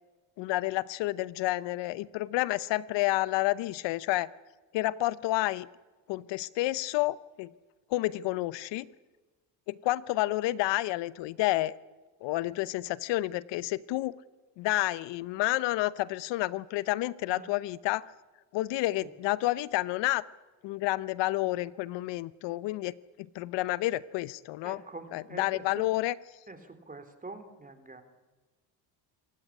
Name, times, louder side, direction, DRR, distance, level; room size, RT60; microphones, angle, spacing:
voice 1, 0.4-4.3 4.7-5.7 6.1-7.5 7.9-8.9 9.7-11.7 12.2-14.1 14.6-18.0 18.5-20.3 20.6-24.8 25.1-26.1, left 17 dB, 80° left, 19 dB, 0.9 m, -30 dB
voice 2, 24.6-25.9 26.5-28.0, right 3 dB, 20° right, 9 dB, 3.6 m, -45 dB
27.5 x 15.0 x 9.9 m, 1.2 s
supercardioid pair, 85°, 42 cm